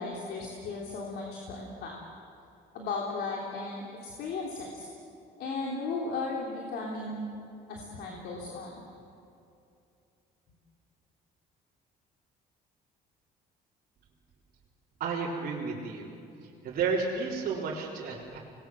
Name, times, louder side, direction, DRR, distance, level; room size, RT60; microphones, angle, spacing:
voice 1, 0.0-1.9 2.7-4.9 5.4-7.3 7.7-8.8, left 3 dB, 70° left, -2 dB, 3.6 m, -36 dB
voice 2, 15.0-16.1 16.6-18.4, right 5 dB, 55° right, -6 dB, 4.0 m, -32 dB
26.0 x 20.0 x 7.7 m, 2.6 s
cardioid pair, 110°, 17 cm